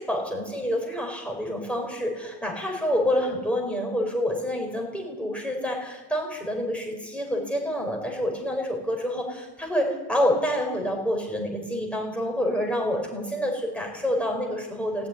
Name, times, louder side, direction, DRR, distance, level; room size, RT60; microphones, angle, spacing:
voice 1, 0.0-15.1, equal, 5° left, 0 dB, 5.4 m, -27 dB
17.0 x 17.0 x 10.0 m, 1.2 s
wide cardioid pair, 130°, 43 cm